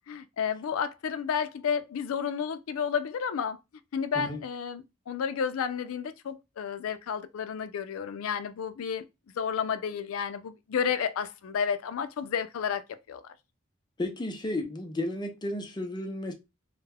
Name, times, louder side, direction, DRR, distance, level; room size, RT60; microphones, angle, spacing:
voice 1, 0.1-3.6 3.9-9.0 9.4-12.8 13.1-13.2, left 7 dB, 80° left, 0.4 m, -31 dB
voice 2, 14.0-16.3, left 1 dB, 20° left, 0.5 m, -33 dB
2.3 x 2.1 x 3.3 m
head